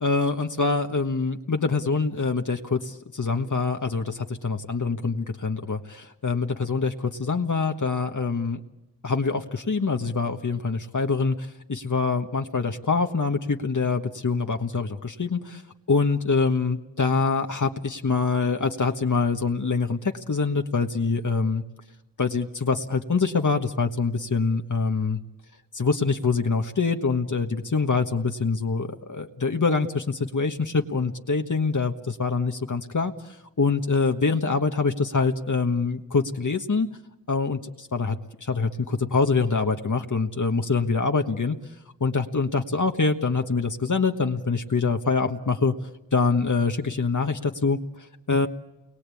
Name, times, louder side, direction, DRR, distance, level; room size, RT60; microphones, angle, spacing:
voice 1, 0.0-8.6 9.0-15.6 15.9-21.6 22.2-25.2 25.7-36.9 37.3-41.6 42.0-45.7 46.1-48.5, left 4 dB, 55° left, 5 dB, 1.4 m, -25 dB
28.5 x 22.5 x 8.5 m, 0.99 s
cardioid pair, 45°, 35 cm